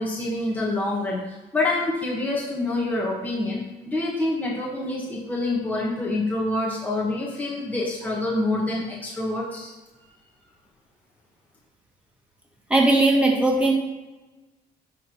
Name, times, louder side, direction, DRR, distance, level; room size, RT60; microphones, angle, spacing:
voice 1, 0.0-9.7, left 2 dB, 10° left, -5 dB, 1.7 m, -26 dB
voice 2, 12.7-13.7, right 2 dB, 5° right, -1 dB, 2.0 m, -18 dB
11.0 x 3.7 x 4.6 m, 1.1 s
cardioid pair, 110°, 17 cm